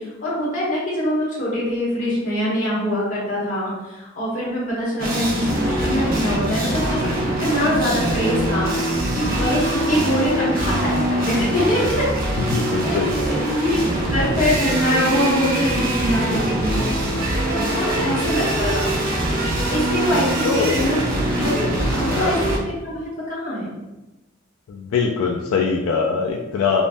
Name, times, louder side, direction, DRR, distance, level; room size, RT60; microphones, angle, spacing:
voice 1, 0.0-7.1 7.4-8.7 9.1-12.1 12.8-13.8 14.1-17.0 17.4-18.9 19.7-21.0 21.3-23.8, equal, 40° left, -7 dB, 0.8 m, -24 dB
sound 1, 5.0-22.6, right 1 dB, 45° right, 0.5 m, -23 dB
voice 2, 12.4-13.4 17.9-18.2 20.4-20.8 21.9-22.4 24.7-26.8, left 5 dB, 80° left, 1 dB, 0.3 m, -23 dB
2.5 x 2.0 x 3.3 m, 1.0 s
head